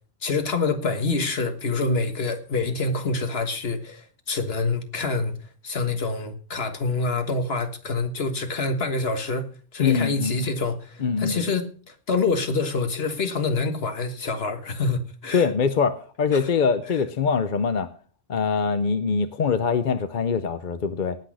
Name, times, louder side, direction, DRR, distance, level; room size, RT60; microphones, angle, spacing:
voice 1, 0.2-5.4 5.6-9.5 9.7-15.5 16.3-16.5, left 3 dB, 70° left, 1.7 m, -26 dB
voice 2, 9.8-10.5 11.0-11.4 15.3-17.9 18.3-21.2, left 5 dB, 50° left, 0.9 m, -23 dB
18.5 x 6.2 x 6.3 m
omnidirectional pair, 1.1 m